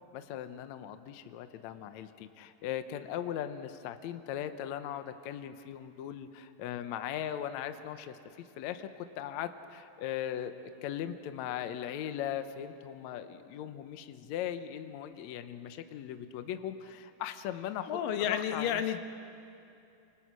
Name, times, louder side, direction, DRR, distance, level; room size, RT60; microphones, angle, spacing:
voice 1, 0.1-18.0 18.3-18.8, left 10 dB, 70° left, 9 dB, 1.9 m, -39 dB
voice 2, 17.9-19.0, left 9 dB, 90° left, 7 dB, 2.8 m, -31 dB
29.5 x 26.0 x 6.2 m, 2.7 s
omnidirectional pair, 3.8 m